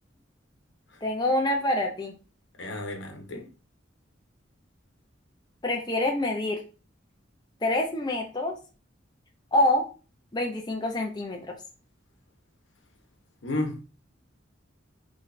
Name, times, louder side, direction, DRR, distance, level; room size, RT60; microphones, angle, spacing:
voice 1, 1.0-2.1 5.6-6.6 7.6-8.5 9.5-9.9 10.3-11.4, left 1 dB, 20° left, 0.6 m, -26 dB
voice 2, 2.6-3.5 13.4-13.9, left 2 dB, 65° left, 1.1 m, -32 dB
6.1 x 3.3 x 2.6 m
head